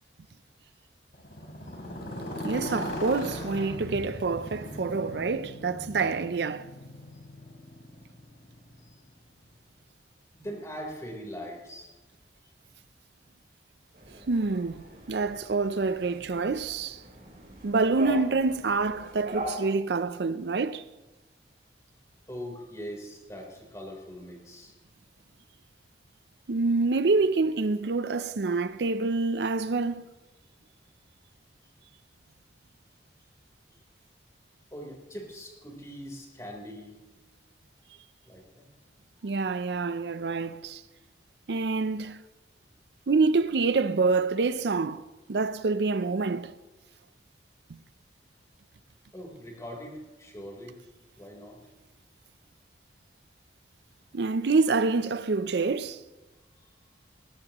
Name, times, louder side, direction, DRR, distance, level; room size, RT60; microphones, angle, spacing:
Motorcycle, 1.1-9.2, left 1 dB, 65° left, 3.4 m, -39 dB
voice 1, 2.4-6.7 14.3-17.0 17.6-20.9 26.5-30.0 39.2-40.8 41.5-42.2 43.1-46.5 47.7-47.8 54.1-56.0, right 4 dB, 70° right, 0.5 m, -27 dB
voice 2, 10.3-11.9 22.3-24.7 34.7-37.0 38.2-38.6 49.1-50.7 51.2-51.6, equal, 20° left, 3.7 m, -41 dB
sound 1, 13.9-19.5, right 1 dB, 50° right, 4.1 m, -41 dB
20.0 x 18.0 x 3.0 m
head